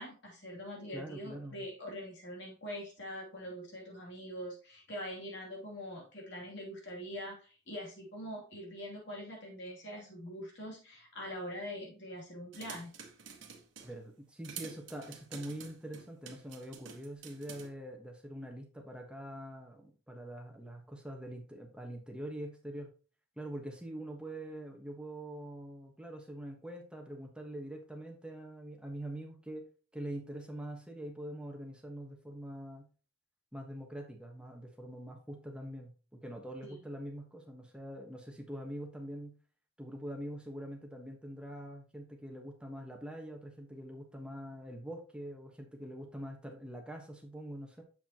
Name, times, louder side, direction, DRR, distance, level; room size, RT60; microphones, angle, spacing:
voice 1, 0.0-12.9 36.6-36.8, equal, 60° left, -2 dB, 2.9 m, -43 dB
voice 2, 0.9-1.7 13.8-22.9 23.4-29.7 29.9-32.9 33.5-39.4 39.8-47.8, right 1 dB, 5° right, 1 dB, 1.3 m, -44 dB
sound 1, 12.5-14.0 14.4-17.7, right 6 dB, 65° right, 1.2 m, -49 dB
7.3 x 7.1 x 2.9 m, 0.36 s
head